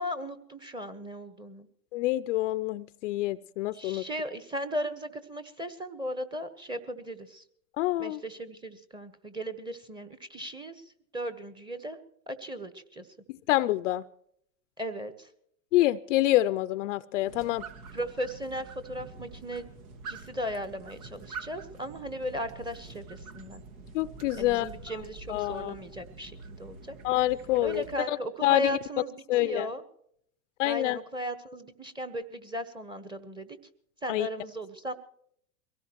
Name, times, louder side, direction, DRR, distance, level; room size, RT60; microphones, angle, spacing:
voice 1, 0.0-1.7 3.7-7.4 8.0-12.0 12.3-13.1 14.8-15.3 17.9-19.7 20.1-23.6 24.4-27.0 27.6-29.8 30.6-33.6 34.0-34.9, equal, 10° right, 11 dB, 1.2 m, -37 dB
voice 2, 1.9-4.0 7.8-8.2 13.3-14.0 15.7-17.6 23.9-24.7 25.3-25.7 27.0-28.2 28.4-28.8 29.3-29.7 30.6-31.0 34.1-34.3, left 16 dB, 55° left, 15 dB, 0.6 m, -27 dB
sound 1, 17.3-27.9, right 4 dB, 65° right, 2.1 m, -46 dB
23.0 x 17.5 x 3.0 m, 0.68 s
hypercardioid pair, 130°, 45 cm